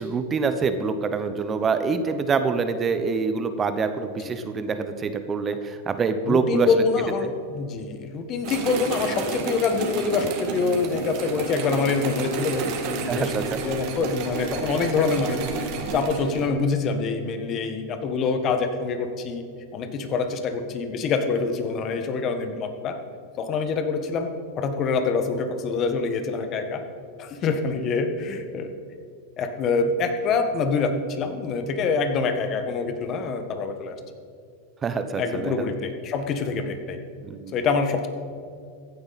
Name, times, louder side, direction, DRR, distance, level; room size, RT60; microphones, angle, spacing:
voice 1, 0.0-6.7 13.1-13.6 34.8-35.7 37.2-37.6, right 5 dB, 25° right, 10 dB, 0.8 m, -25 dB
voice 2, 6.2-13.3 13.6-15.4 15.9-19.4 19.7-23.0 23.4-24.3 24.6-26.8 27.2-28.7 29.4-33.9 35.2-37.0 37.5-38.1, left 4 dB, 35° left, 7 dB, 1.4 m, -25 dB
sound 1, 8.4-16.5, right 4 dB, 50° right, 1.9 m, -31 dB
15.0 x 9.8 x 4.2 m, 2.3 s
hypercardioid pair, 120°, 0 cm